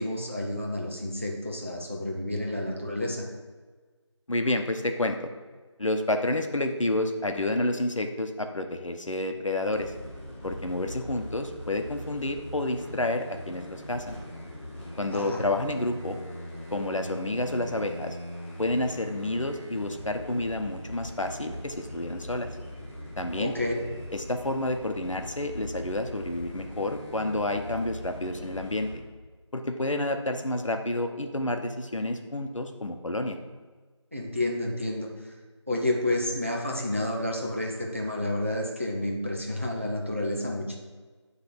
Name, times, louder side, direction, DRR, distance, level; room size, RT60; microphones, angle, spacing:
voice 1, 0.0-3.2 15.1-15.4 23.4-23.8 34.1-35.3 35.7-40.8, left 1 dB, 25° right, 0 dB, 0.6 m, -30 dB
voice 2, 4.3-5.3 5.8-9.9 10.4-14.2 15.0-16.2 16.7-18.2 18.6-22.5 23.2-23.5 24.1-29.0 29.5-33.4, left 1 dB, 85° left, 5 dB, 0.9 m, -29 dB
sound 1, 9.7-29.0, left 1 dB, 25° left, 2.2 m, -41 dB
9.6 x 3.2 x 4.6 m, 1.4 s
figure-of-eight pair, 175°, 16 cm